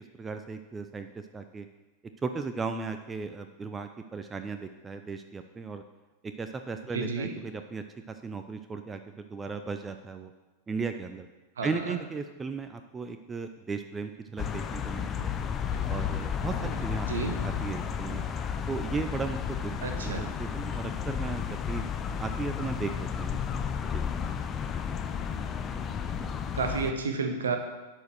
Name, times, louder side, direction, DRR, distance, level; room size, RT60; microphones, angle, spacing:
voice 1, 0.1-1.7 2.2-5.8 6.2-10.3 10.7-11.3 11.6-15.3 15.9-17.1 17.4-18.2 18.7-21.8 22.2-23.6 23.9-24.1, right 4 dB, 15° right, 8 dB, 0.5 m, -36 dB
voice 2, 6.9-7.3 11.6-12.0 16.6-16.7 17.1-17.3 19.8-20.3 26.5-27.6, right 4 dB, 65° right, 5 dB, 1.2 m, -31 dB
sound 1, 14.4-26.9, left 7 dB, 25° left, 0.6 m, -32 dB
sound 2, 15.7-19.1, left 4 dB, 55° left, 2.2 m, -48 dB
10.5 x 4.8 x 6.3 m, 1.2 s
figure-of-eight pair, 90°, 0 cm